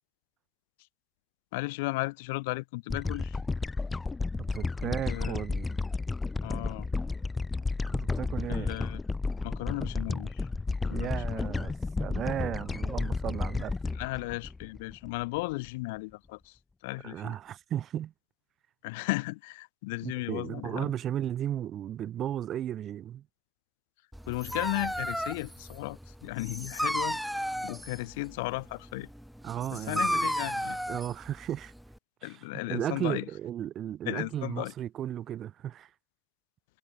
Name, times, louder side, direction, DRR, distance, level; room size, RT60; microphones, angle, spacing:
voice 1, 1.5-3.4 4.8-5.4 6.4-6.9 8.5-9.0 9.4-10.5 10.8-11.5 13.9-16.5 16.8-17.3 18.8-20.9 24.3-27.2 27.6-29.1 29.7-30.8 32.2-33.2 34.1-34.7, left 24 dB, 70° left, 1.5 m, -35 dB
sound 1, 2.9-15.4, left 3 dB, 20° left, 4.7 m, -32 dB
voice 2, 4.5-5.8 7.9-8.8 10.9-11.7 12.0-13.7 17.0-18.1 20.0-23.2 29.4-30.3 30.9-31.7 32.2-35.9, right 11 dB, 45° right, 5.9 m, -35 dB
Dog, 24.1-32.0, equal, ahead, 6.0 m, -34 dB
hypercardioid pair, 70°, 0 cm